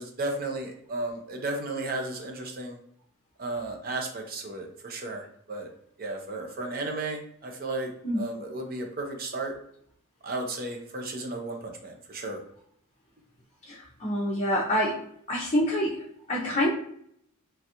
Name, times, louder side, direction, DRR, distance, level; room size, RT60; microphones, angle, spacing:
voice 1, 0.0-2.8 3.4-5.7 6.0-9.5 10.2-12.4, right 2 dB, 40° right, 2 dB, 0.6 m, -34 dB
voice 2, 13.6-15.0 15.3-16.7, equal, 35° left, -5 dB, 0.5 m, -27 dB
3.3 x 2.3 x 2.8 m, 0.68 s
head